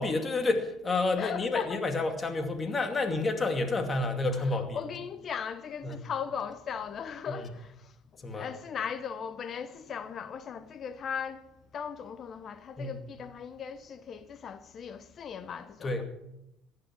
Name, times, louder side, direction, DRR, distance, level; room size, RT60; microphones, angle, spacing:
voice 1, 0.0-4.8 5.8-6.0 7.3-7.4 8.2-8.5 12.8-12.9 15.8-16.1, left 3 dB, 30° left, 2.4 m, -29 dB
voice 2, 1.2-1.8 4.4-11.5 11.7-16.0, left 7 dB, 45° left, 1.0 m, -38 dB
15.5 x 11.0 x 6.1 m
supercardioid pair, 85°, 0 cm